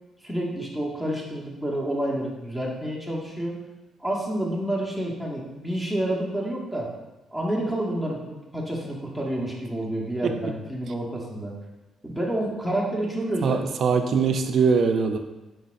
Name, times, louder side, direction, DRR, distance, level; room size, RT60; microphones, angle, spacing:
voice 1, 0.2-3.6 4.0-6.9 7.3-11.5 12.0-13.6, right 1 dB, 5° left, -3 dB, 1.0 m, -29 dB
voice 2, 13.4-15.2, right 5 dB, 60° right, 7 dB, 0.4 m, -22 dB
4.6 x 3.9 x 2.5 m, 1.1 s
cardioid pair, 90°, 0 cm